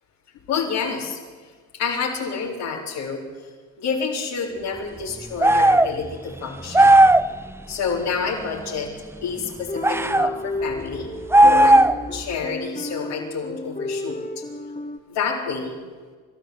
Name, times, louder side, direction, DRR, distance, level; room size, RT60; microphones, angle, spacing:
voice 1, 0.5-1.2 1.8-3.5 3.8-7.0 7.7-8.9 9.2-11.1 11.4-11.8 12.1-14.2 15.1-15.8, left 5 dB, 80° left, -3 dB, 4.3 m, -28 dB
sound 1, 5.4-5.9 6.7-7.3 9.8-10.3 11.3-12.1, right 1 dB, 5° right, 0.7 m, -14 dB
sound 2, 9.7-15.0, left 2 dB, 20° left, 2.2 m, -32 dB
29.0 x 12.5 x 8.2 m, 1.5 s
hypercardioid pair, 60°, 40 cm